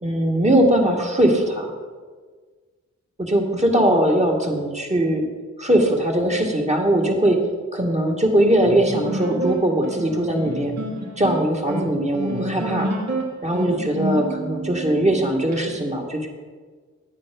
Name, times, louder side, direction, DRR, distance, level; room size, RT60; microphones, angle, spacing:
voice 1, 0.0-1.7 3.2-5.2 5.6-7.4 7.7-10.7 11.2-12.9 13.4-16.3, right 1 dB, 25° right, 1 dB, 2.0 m, -20 dB
sound 1, 8.6-15.6, right 1 dB, 60° right, 2.2 m, -29 dB
9.6 x 8.2 x 5.3 m, 1.5 s
cardioid pair, 60°, 30 cm